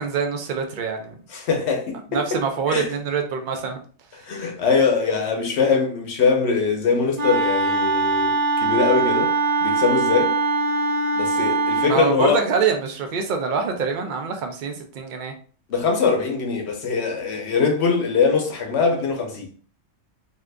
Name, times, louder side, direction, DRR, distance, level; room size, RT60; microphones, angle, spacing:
voice 1, 0.0-1.2 2.1-3.8 11.8-15.3, right 6 dB, 80° right, 0.4 m, -25 dB
voice 2, 1.3-2.2 2.7-2.9 4.2-8.3 8.6-9.3 9.6-10.4 11.2-12.4 15.7-19.5, left 5 dB, 60° left, 0.9 m, -22 dB
Wind instrument woodwind instrument, 7.2-12.0, right 3 dB, 40° right, 0.6 m, -22 dB
2.7 x 2.4 x 3.3 m
omnidirectional pair, 1.4 m